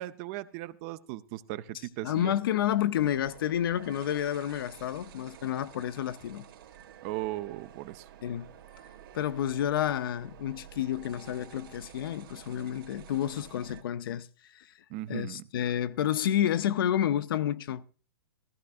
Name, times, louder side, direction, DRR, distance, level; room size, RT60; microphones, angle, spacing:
voice 1, 0.0-2.3 7.0-8.1 14.9-15.4, right 16 dB, 35° right, 0.6 m, -37 dB
voice 2, 2.0-6.5 8.2-8.5 9.1-14.7 15.1-17.9, left 10 dB, 65° left, 0.7 m, -30 dB
sound 1, 2.9-13.8, right 10 dB, 65° right, 2.5 m, -51 dB
15.0 x 15.0 x 2.5 m
hypercardioid pair, 140°, 12 cm